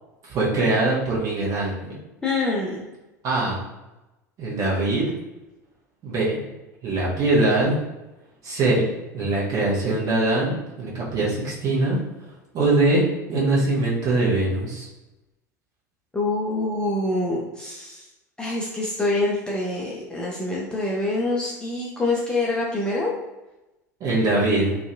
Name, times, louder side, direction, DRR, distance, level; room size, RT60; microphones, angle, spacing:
voice 1, 0.3-1.9 3.2-3.7 4.4-5.1 6.0-6.4 6.8-7.7 8.4-8.8 9.1-12.0 12.5-13.0 13.3-14.9 24.0-24.8, right 2 dB, 35° right, -5 dB, 1.0 m, -22 dB
voice 2, 2.2-2.9 16.1-18.0 18.4-23.1, left 2 dB, 10° left, -4 dB, 0.4 m, -25 dB
2.5 x 2.2 x 2.5 m, 1.0 s
figure-of-eight pair, 75°, 10 cm